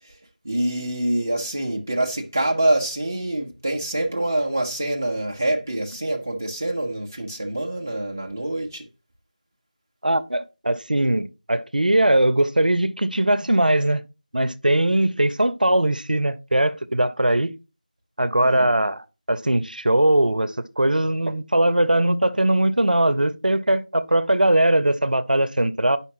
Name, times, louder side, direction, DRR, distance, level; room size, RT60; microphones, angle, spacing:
voice 1, 0.4-8.8 18.4-18.7, right 1 dB, 20° right, 0.5 m, -25 dB
voice 2, 10.0-14.0 14.3-17.6 18.2-26.0, right 1 dB, 70° right, 0.7 m, -20 dB
8.3 x 5.6 x 3.0 m
figure-of-eight pair, 175°, 5 cm